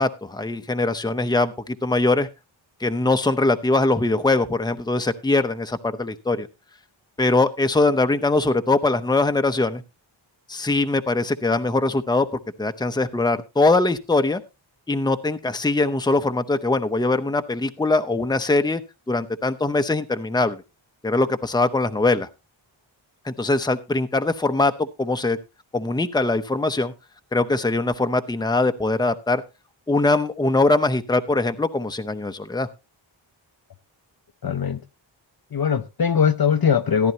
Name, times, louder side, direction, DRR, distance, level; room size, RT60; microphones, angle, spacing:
voice 1, 0.0-2.3 2.8-6.5 7.2-9.8 10.5-12.3 12.6-14.4 14.9-18.8 19.1-20.6 21.0-22.3 23.2-25.4 25.7-26.9 27.3-29.4 29.9-32.7, left 2 dB, 10° left, 0.7 m, -22 dB
voice 2, 34.4-34.8 35.5-37.1, left 7 dB, 50° left, 0.7 m, -20 dB
14.0 x 10.5 x 2.8 m
wide cardioid pair, 75°, 48 cm